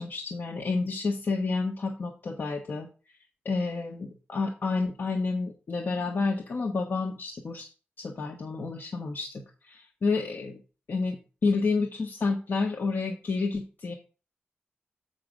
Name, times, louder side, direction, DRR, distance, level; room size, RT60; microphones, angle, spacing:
voice 1, 0.0-2.9 3.4-7.7 8.0-10.6 10.9-13.9, left 4 dB, 55° left, 1 dB, 1.2 m, -30 dB
7.3 x 5.7 x 5.1 m, 0.34 s
wide cardioid pair, 160°, 4 cm